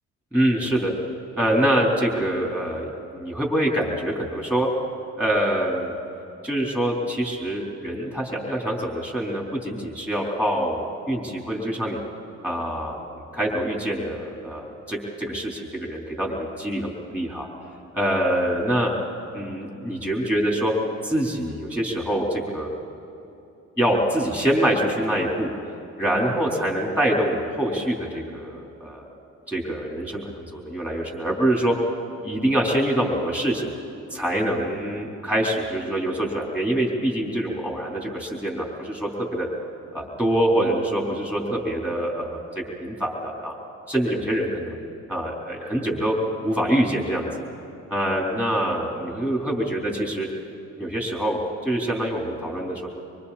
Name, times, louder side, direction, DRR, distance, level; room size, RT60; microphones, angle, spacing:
voice 1, 0.3-0.9 1.4-4.7 5.2-5.9 6.4-12.0 12.4-13.0 13.3-17.5 17.9-18.9 19.3-20.7 21.0-22.7 23.8-25.5 26.0-29.1 29.5-31.7 32.2-33.7 34.1-39.5 39.9-43.6 43.9-44.8 45.1-46.1 46.4-47.3 47.9-50.3 50.8-52.9, right 1 dB, 5° left, -2 dB, 4.0 m, -25 dB
25.0 x 24.5 x 4.3 m, 2.9 s
cardioid pair, 90°, 30 cm